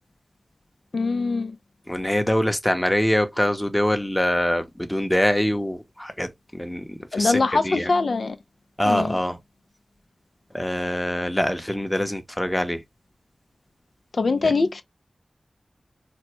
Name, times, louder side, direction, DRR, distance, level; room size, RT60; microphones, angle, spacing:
voice 1, 0.9-1.6 7.1-8.4 8.9-9.2 14.1-14.8, left 3 dB, 75° left, 0.4 m, -23 dB
voice 2, 1.9-7.9 8.8-9.4 10.5-12.8 14.4-14.5, equal, 10° left, 0.7 m, -24 dB
4.2 x 2.1 x 2.9 m
wide cardioid pair, 50°, 0 cm